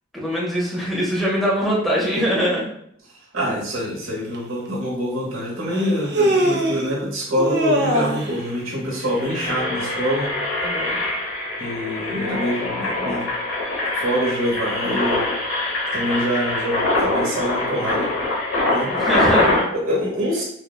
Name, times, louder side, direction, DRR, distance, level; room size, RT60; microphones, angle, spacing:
voice 1, 0.1-2.7 10.6-11.0 18.9-19.6, equal, ahead, -5 dB, 0.6 m, -22 dB
voice 2, 3.3-10.3 11.6-13.3 13.9-15.3 15.9-18.1 18.7-18.9 19.7-20.4, equal, 85° right, -3 dB, 0.9 m, -25 dB
Human voice, 4.3-4.4 5.7-6.9 7.4-8.4, right 1 dB, 55° right, 0.4 m, -21 dB
Engine, 8.2-8.5 8.9-19.6, left 2 dB, 75° left, 0.8 m, -24 dB
3.2 x 2.1 x 2.2 m, 0.70 s
head